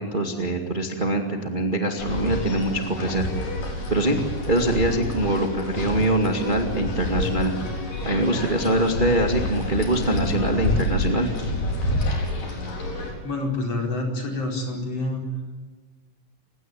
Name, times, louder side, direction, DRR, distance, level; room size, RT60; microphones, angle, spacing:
voice 1, 0.0-3.3 3.9-4.2 4.5-7.5 8.0-11.3, right 1 dB, 20° right, 3 dB, 1.9 m, -23 dB
sound 1, 2.0-13.1, left 2 dB, 80° left, 6.2 m, -28 dB
voice 2, 13.2-15.2, left 2 dB, 50° left, 1 dB, 5.8 m, -27 dB
29.5 x 17.5 x 9.3 m, 1.3 s
omnidirectional pair, 3.7 m